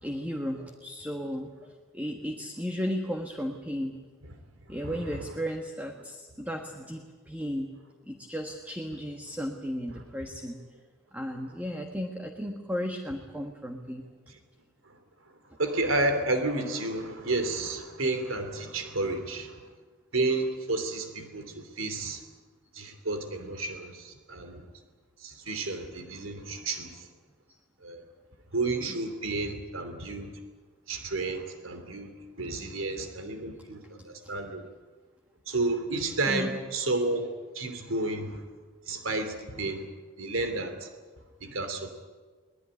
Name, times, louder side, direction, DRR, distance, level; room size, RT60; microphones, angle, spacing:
voice 1, 0.0-4.0 4.7-7.7 8.1-10.6 11.1-14.1 28.8-29.0 34.2-34.3 36.3-36.5, equal, 10° right, 3 dB, 1.5 m, -35 dB
voice 2, 4.8-5.2 15.6-19.6 20.1-22.2 22.7-24.7 25.2-27.1 27.8-28.0 28.5-30.4 30.9-34.7 35.5-37.3 37.5-38.4 38.9-39.8 40.2-40.9 41.4-41.9, right 2 dB, 90° right, 7 dB, 3.0 m, -31 dB
23.0 x 19.5 x 9.9 m, 1.4 s
head